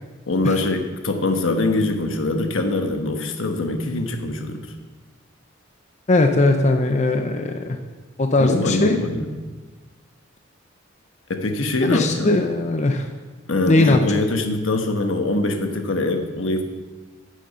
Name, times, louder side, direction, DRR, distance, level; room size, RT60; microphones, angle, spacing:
voice 1, 0.3-4.6 8.4-9.3 11.3-12.4 13.5-16.6, left 2 dB, 80° left, 5 dB, 1.2 m, -23 dB
voice 2, 6.1-7.8 8.2-9.0 11.9-13.1 13.7-14.2, left 2 dB, 35° left, 5 dB, 0.6 m, -19 dB
9.8 x 6.4 x 6.7 m, 1.3 s
head